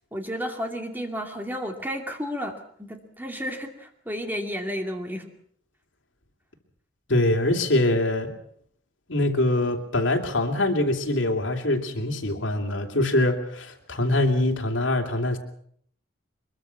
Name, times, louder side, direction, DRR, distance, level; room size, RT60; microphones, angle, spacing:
voice 1, 0.1-5.3, equal, 10° right, 4 dB, 2.6 m, -32 dB
voice 2, 7.1-8.3 9.1-15.4, left 1 dB, 75° left, 4 dB, 2.9 m, -23 dB
23.5 x 22.5 x 5.9 m, 0.64 s
head